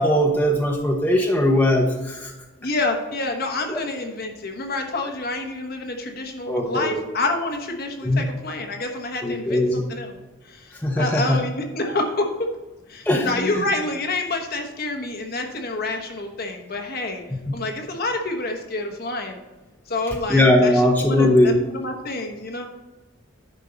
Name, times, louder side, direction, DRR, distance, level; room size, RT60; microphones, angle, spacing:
voice 1, 0.0-2.3 3.7-3.8 6.5-7.0 8.0-8.3 9.2-9.8 10.8-11.4 13.1-13.6 20.3-21.6, left 1 dB, 10° left, 0 dB, 1.0 m, -19 dB
voice 2, 2.6-10.2 10.4-12.5 12.9-17.2 17.5-19.4 19.9-22.7, left 2 dB, 50° left, 3 dB, 1.2 m, -28 dB
10.5 x 5.5 x 3.9 m, 1.2 s
head